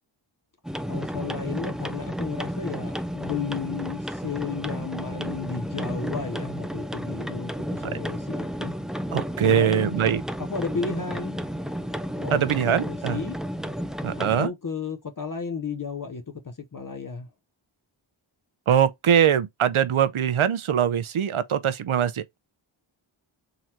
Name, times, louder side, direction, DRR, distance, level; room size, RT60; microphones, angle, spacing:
sound 1, 0.6-14.5, equal, ahead, 0.4 m, -32 dB
voice 1, 0.9-8.7 9.4-10.0 10.5-11.4 12.2-13.4 14.1-17.3, left 5 dB, 40° left, 0.8 m, -33 dB
voice 2, 9.1-10.2 12.3-13.2 14.0-14.5 18.7-22.4, right 9 dB, 80° right, 0.7 m, -22 dB
3.9 x 2.9 x 4.4 m
wide cardioid pair, 55°, 49 cm